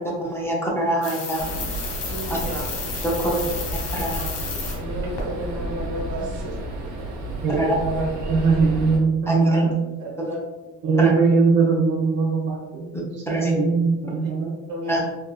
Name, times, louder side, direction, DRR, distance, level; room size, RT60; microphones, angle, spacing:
voice 1, 0.2-1.5 2.3-2.4 3.0-3.4 3.9-4.2 7.6-7.7 9.3-9.6 11.0-11.1 13.3-13.5 14.9-15.0, right 1 dB, 10° left, -4 dB, 0.6 m, -25 dB
sound 1, 1.0-4.8 5.2-5.3, left 4 dB, 80° left, 1.0 m, -32 dB
sound 2, 1.4-9.0, right 1 dB, 60° right, 0.9 m, -32 dB
voice 2, 2.0-2.5 3.1-3.2 4.7-7.0 8.4-8.6 10.0-10.4 10.8-11.0 14.1-14.3 14.7-15.1, equal, 75° right, -4 dB, 1.4 m, -33 dB
voice 3, 3.9-4.8 7.4-9.7 10.8-12.8 13.3-14.5, right 4 dB, 35° right, -3 dB, 0.6 m, -21 dB
3.5 x 2.3 x 2.3 m, 1.1 s
cardioid pair, 105°, 33 cm